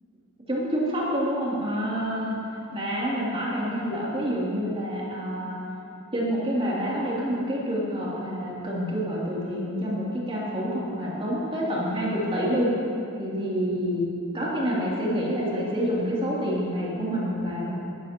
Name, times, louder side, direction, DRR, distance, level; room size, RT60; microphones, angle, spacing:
voice 1, 0.5-2.4 2.7-5.6 6.1-12.7 13.2-14.1 14.3-17.7, equal, 25° right, -7 dB, 3.0 m, -27 dB
19.0 x 13.0 x 3.0 m, 2.6 s
head